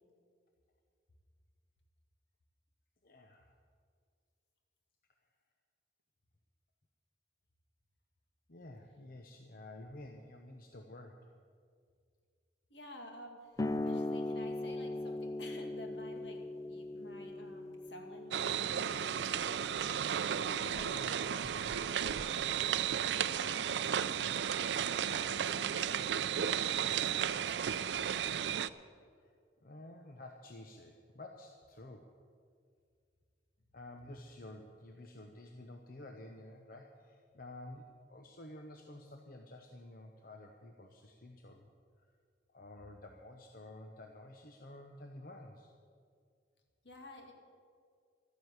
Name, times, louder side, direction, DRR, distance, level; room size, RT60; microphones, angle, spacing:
voice 1, 3.0-3.5 8.5-11.3 20.3-22.5 29.2-29.3 29.6-32.1 33.7-41.7 42.0-42.1 42.5-45.7, left 1 dB, 50° left, 3 dB, 0.9 m, -51 dB
voice 2, 12.7-13.5 13.8-19.6 23.3-28.4 46.8-47.3, left 1 dB, 70° left, 3 dB, 2.1 m, -52 dB
sound 1, 13.6-20.7, left 2 dB, 20° left, 0.3 m, -40 dB
sound 2, 18.3-28.7, right 9 dB, 70° right, 0.4 m, -34 dB
12.5 x 10.5 x 8.1 m, 2.1 s
head